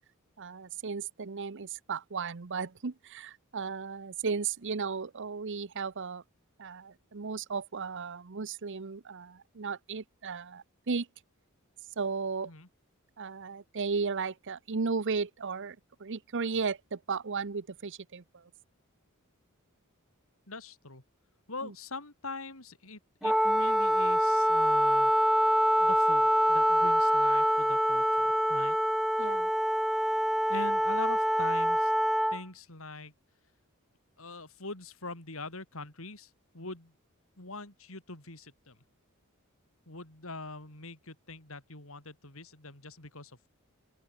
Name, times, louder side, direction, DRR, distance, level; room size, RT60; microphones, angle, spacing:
voice 1, 0.4-6.2 6.6-11.1 12.0-12.5 13.2-18.4 21.6-21.7 29.2-29.5, right 5 dB, 55° right, 0.8 m, -35 dB
voice 2, 20.5-21.0 21.5-25.1 25.8-28.8 30.5-31.9 32.3-33.1 34.2-36.9 37.4-38.8 39.9-43.5, left 3 dB, 65° left, 5.5 m, -43 dB
Wind instrument woodwind instrument, 23.2-32.4, equal, ahead, 0.4 m, -25 dB
open air
head